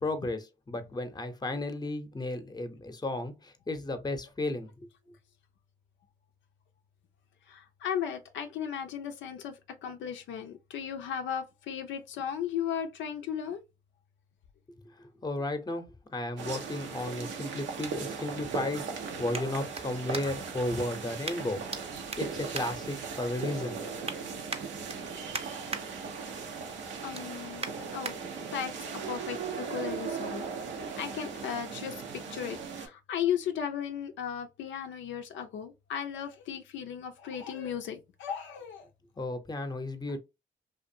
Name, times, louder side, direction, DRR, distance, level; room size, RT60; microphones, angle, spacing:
voice 1, 0.0-4.7 15.2-18.9 19.2-21.6 22.2-23.9 39.2-40.2, left 2 dB, 20° left, 0.7 m, -34 dB
voice 2, 7.5-13.6 25.2-25.4 26.1-26.6 27.0-28.1 28.5-30.5 31.0-32.0 32.3-38.9, left 8 dB, 85° left, 0.4 m, -36 dB
sound 1, 16.4-32.9, right 5 dB, 85° right, 0.6 m, -38 dB
sound 2, 19.3-20.6 21.2-21.8 22.1-23.4 23.8-24.2 24.5-25.8 26.3-26.5 26.9-28.2 28.7-28.8, right 4 dB, 35° right, 0.6 m, -40 dB
2.6 x 2.4 x 2.6 m
supercardioid pair, 55°, 19 cm